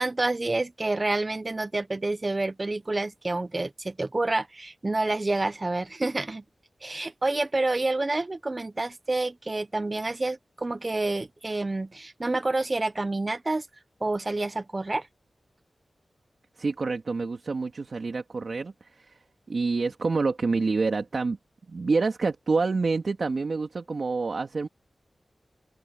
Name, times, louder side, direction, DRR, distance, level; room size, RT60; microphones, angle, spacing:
voice 1, 0.0-6.4 6.8-13.7 14.0-15.1, right 2 dB, 35° right, 1.1 m, -28 dB
voice 2, 16.6-19.1 19.5-21.4 21.7-24.7, right 4 dB, 60° right, 2.5 m, -27 dB
open air
wide cardioid pair, 70°, 0 cm